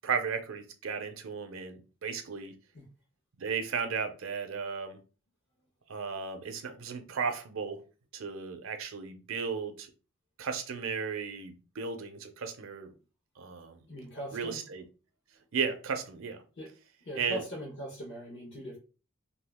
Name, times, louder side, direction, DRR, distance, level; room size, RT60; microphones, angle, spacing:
voice 1, 0.0-2.5 3.4-5.0 5.9-7.8 8.1-9.9 10.4-12.9 13.4-13.8 14.3-14.8 15.5-16.4 17.2-17.4, right 5 dB, 70° right, 0.5 m, -35 dB
voice 2, 13.9-14.6 16.6-16.7 17.0-18.8, right 1 dB, 60° left, 1.0 m, -40 dB
2.7 x 2.4 x 3.4 m
head